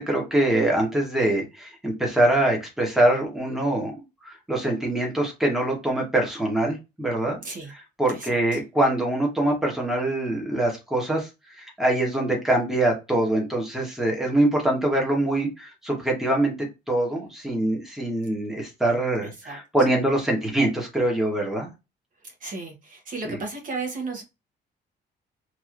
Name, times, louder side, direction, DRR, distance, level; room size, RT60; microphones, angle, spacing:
voice 1, 0.0-7.4 7.7-11.3 11.6-21.7 23.2-23.4, right 1 dB, ahead, 1.1 m, -24 dB
voice 2, 8.1-8.6 19.2-19.6 22.4-24.2, right 3 dB, 45° right, 1.0 m, -34 dB
3.0 x 2.7 x 2.4 m
cardioid pair, 130°, 18 cm